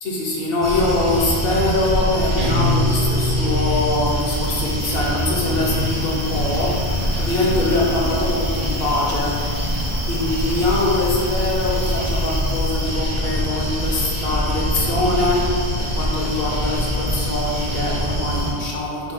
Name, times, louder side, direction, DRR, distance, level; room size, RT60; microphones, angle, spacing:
voice 1, 0.0-9.4 10.1-19.1, left 2 dB, 65° left, -3 dB, 1.0 m, -23 dB
sound 1, 0.6-18.5, equal, 20° right, 0.5 m, -24 dB
Guitar, 2.4-5.0, left 1 dB, 55° right, 0.8 m, -24 dB
4.6 x 2.3 x 4.1 m, 2.2 s
omnidirectional pair, 1.1 m